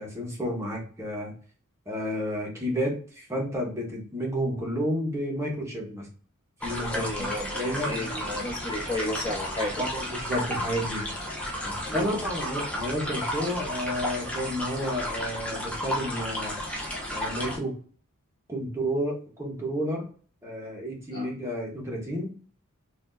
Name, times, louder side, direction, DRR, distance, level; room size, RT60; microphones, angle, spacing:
voice 1, 0.0-1.3 1.9-6.1 6.6-7.1 7.6-8.1 9.8-11.0 11.6-16.6 17.1-17.8 18.5-20.0 20.4-22.3, equal, 15° right, -2 dB, 1.2 m, -31 dB
sound 1, 6.6-17.6, left 1 dB, 5° left, 0.8 m, -33 dB
voice 2, 6.9-9.9 11.9-12.1 21.1-21.3, left 1 dB, 25° left, -5 dB, 1.7 m, -33 dB
4.2 x 2.7 x 2.6 m, 0.42 s
head